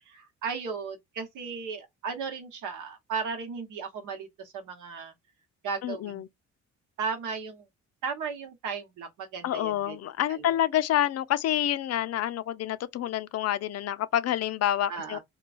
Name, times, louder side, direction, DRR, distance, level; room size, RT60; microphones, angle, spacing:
voice 1, 0.1-5.1 5.6-6.2 7.0-7.6 8.0-10.0 10.3-10.6 14.9-15.2, right 5 dB, 80° right, 1.1 m, -35 dB
voice 2, 5.8-6.3 9.4-15.2, left 11 dB, 55° left, 0.4 m, -28 dB
3.0 x 2.3 x 2.4 m
cardioid pair, 90°, 30 cm